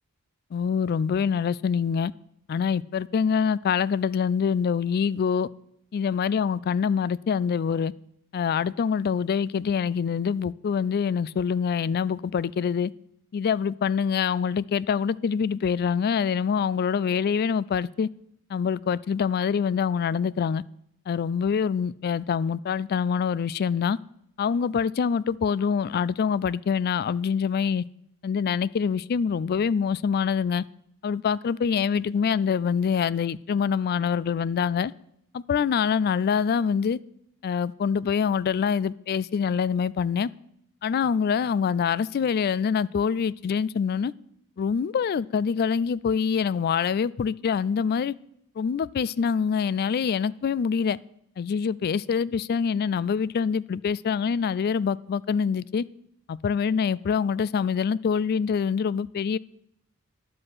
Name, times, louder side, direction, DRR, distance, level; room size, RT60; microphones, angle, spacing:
voice 1, 0.5-2.1 2.5-5.5 5.9-7.9 8.3-12.9 13.3-18.1 18.5-20.6 21.1-24.0 24.4-27.9 28.2-30.6 31.0-34.9 35.3-37.0 37.4-40.3 40.8-44.1 44.6-48.1 48.6-51.0 51.4-55.8 56.3-59.4, left 6 dB, 45° left, 0.3 m, -25 dB
11.0 x 7.6 x 6.0 m
head